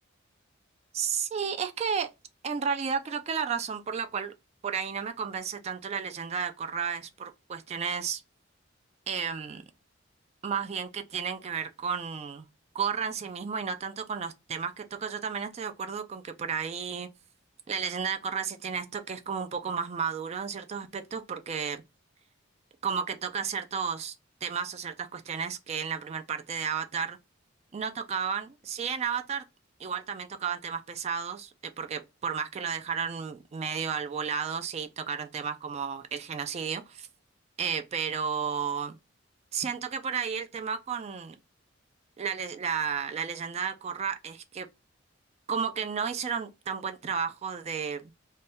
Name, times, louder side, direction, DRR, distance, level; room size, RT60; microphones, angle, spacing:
voice 1, 0.9-2.1 2.4-4.3 4.6-8.2 9.1-9.6 10.4-12.5 12.7-17.1 17.7-21.8 22.8-24.1 24.4-27.2 27.7-29.4 29.8-37.1 37.6-39.0 39.5-41.3 42.2-44.7 45.5-48.0, right 6 dB, 35° right, 0.3 m, -32 dB
2.7 x 2.2 x 3.3 m
head